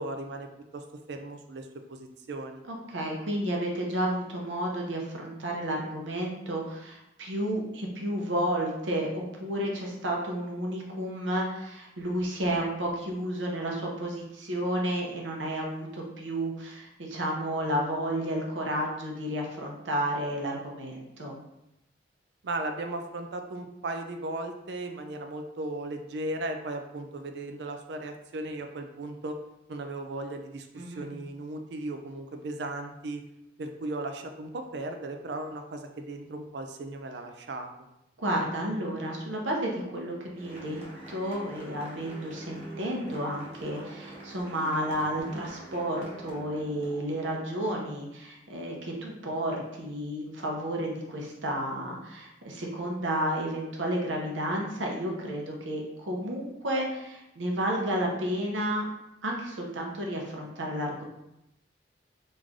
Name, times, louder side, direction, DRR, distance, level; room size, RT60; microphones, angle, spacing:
voice 1, 0.0-2.6 22.4-29.4 29.7-33.2 33.6-37.7, right 2 dB, 60° right, 5 dB, 0.4 m, -36 dB
voice 2, 2.9-21.4 30.8-31.1 38.2-40.8 41.1-58.8 59.2-61.0, right 1 dB, 85° right, -1 dB, 0.8 m, -31 dB
sound 1, 40.3-47.1, right 2 dB, 35° right, 1.0 m, -45 dB
3.2 x 2.6 x 3.6 m, 0.87 s
head